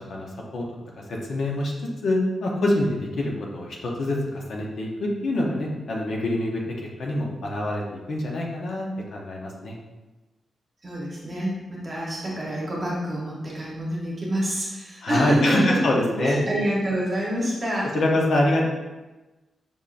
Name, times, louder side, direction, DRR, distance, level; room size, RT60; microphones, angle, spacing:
voice 1, 0.1-0.6 1.1-1.7 2.0-6.6 7.0-9.8 15.0-16.4 17.9-18.7, left 1 dB, 60° left, -1 dB, 0.8 m, -25 dB
voice 2, 10.8-15.8 16.2-18.0, equal, 25° right, -4 dB, 1.1 m, -27 dB
5.5 x 3.5 x 2.5 m, 1.1 s
wide cardioid pair, 170°, 0 cm